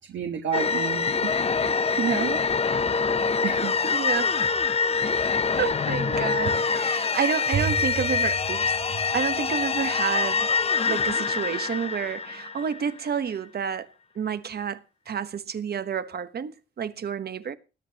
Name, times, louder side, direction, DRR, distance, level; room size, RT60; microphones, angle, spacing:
voice 1, 0.1-2.4 3.4-3.7, right 7 dB, 75° right, 1.4 m, -30 dB
sound 1, 0.5-13.0, left 5 dB, 30° left, 0.6 m, -25 dB
voice 2, 3.9-4.4 5.6-10.5 10.8-13.9 14.1-14.8 15.1-16.5 16.8-17.5, right 7 dB, 55° right, 1.2 m, -29 dB
20.5 x 9.6 x 2.9 m
cardioid pair, 95°, 19 cm